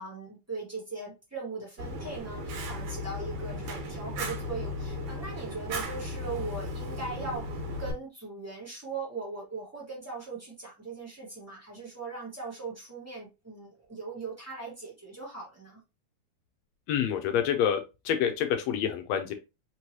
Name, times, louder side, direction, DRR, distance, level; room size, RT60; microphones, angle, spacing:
voice 1, 0.0-15.8, right 3 dB, 25° right, -5 dB, 0.3 m, -40 dB
Fire, 1.8-7.9, left 1 dB, 75° right, 2.6 m, -36 dB
voice 2, 16.9-17.8 18.0-19.3, left 9 dB, 80° left, 6 dB, 1.6 m, -27 dB
5.2 x 3.1 x 2.8 m, 0.27 s
omnidirectional pair, 3.5 m